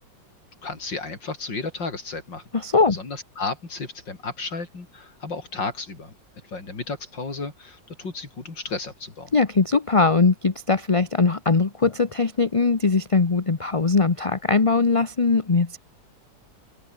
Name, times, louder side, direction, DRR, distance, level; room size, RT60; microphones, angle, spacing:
voice 1, 0.6-2.5 2.9-6.1 6.4-9.3, left 3 dB, 90° left, 5.1 m, -33 dB
voice 2, 2.5-3.0 9.3-15.8, left 4 dB, 25° left, 0.8 m, -20 dB
open air
omnidirectional pair, 1.9 m